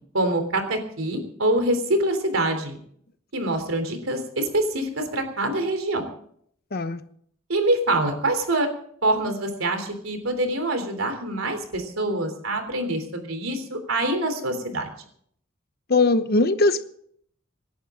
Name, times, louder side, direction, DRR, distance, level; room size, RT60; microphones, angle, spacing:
voice 1, 0.1-2.8 3.3-6.0 7.5-8.7 9.0-14.9, right 1 dB, 80° right, 3.4 m, -25 dB
voice 2, 15.9-16.9, left 3 dB, 50° left, 1.0 m, -20 dB
27.0 x 11.0 x 3.8 m
head